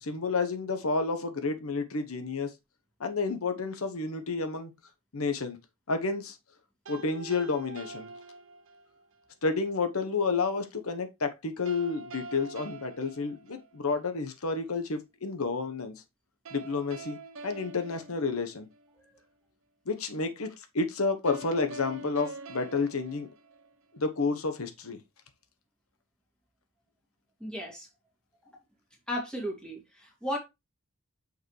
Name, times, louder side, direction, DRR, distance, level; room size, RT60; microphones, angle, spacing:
voice 1, 0.0-2.5 3.0-4.7 5.1-5.6 5.9-6.4 6.9-8.1 9.4-15.9 16.5-17.2 17.4-18.7 19.9-23.3 23.9-25.0, left 4 dB, 90° left, 1.1 m, -30 dB
sound 1, 6.9-9.0 11.7-14.1 16.5-19.0 21.3-24.1, right 3 dB, 65° right, 0.8 m, -45 dB
voice 2, 27.4-27.9 29.1-30.4, equal, 5° left, 2.4 m, -35 dB
6.6 x 5.3 x 3.2 m
head